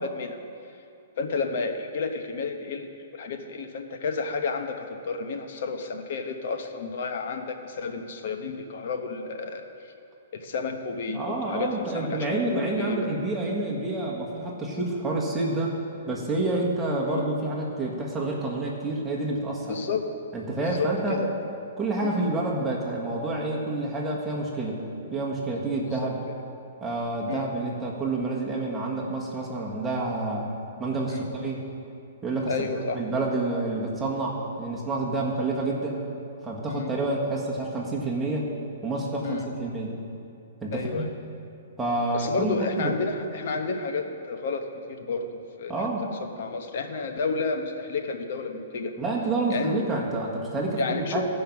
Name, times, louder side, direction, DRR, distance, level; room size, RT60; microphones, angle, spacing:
voice 1, 0.0-0.4 1.2-9.7 10.3-13.1 17.1-17.3 19.7-20.0 20.6-21.3 22.0-22.2 27.3-27.4 31.1-31.3 32.5-33.0 36.7-36.9 39.2-39.5 40.7-41.1 42.1-45.9 46.2-48.9 49.5-49.8 50.7-51.2, left 4 dB, 60° left, 5 dB, 1.0 m, -31 dB
voice 2, 11.1-15.7 16.1-19.7 20.3-21.2 21.8-24.8 25.1-26.2 26.8-30.5 30.8-31.7 32.2-32.5 32.9-36.0 36.4-38.5 38.8-40.0 40.6-41.0 41.8-42.9 45.7-46.1 49.0-51.2, right 2 dB, 10° right, -4 dB, 1.6 m, -28 dB
15.5 x 5.5 x 6.0 m, 2.6 s
hypercardioid pair, 150°, 0 cm